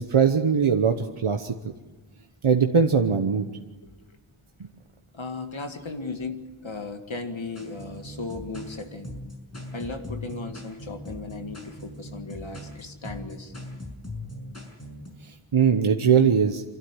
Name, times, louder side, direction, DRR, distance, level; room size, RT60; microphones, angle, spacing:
voice 1, 0.0-1.7 2.4-3.5 4.6-4.7 15.5-16.6, right 6 dB, 90° right, 5 dB, 1.1 m, -21 dB
voice 2, 5.1-9.1 9.7-13.5, left 3 dB, 70° left, 6 dB, 2.1 m, -36 dB
sound 1, 7.5-15.1, left 1 dB, 30° left, 6.0 m, -39 dB
27.5 x 12.5 x 9.7 m, 1.2 s
wide cardioid pair, 60°, 49 cm